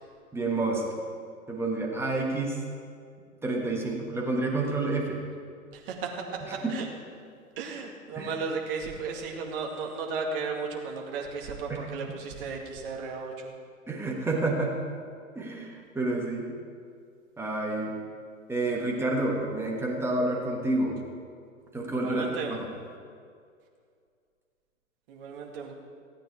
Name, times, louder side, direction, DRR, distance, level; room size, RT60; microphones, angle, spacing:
voice 1, 0.3-0.9 1.5-2.6 3.4-5.2 6.5-6.8 8.2-8.3 11.7-11.9 13.9-14.8 15.3-16.5 17.4-18.0 18.5-21.0 21.7-22.7, right 2 dB, 5° right, -2 dB, 1.3 m, -29 dB
voice 2, 5.7-6.1 6.7-6.9 7.6-13.5 21.9-22.5 25.1-25.7, right 4 dB, 40° right, 1 dB, 2.2 m, -34 dB
16.5 x 8.9 x 4.7 m, 2.2 s
hypercardioid pair, 125°, 42 cm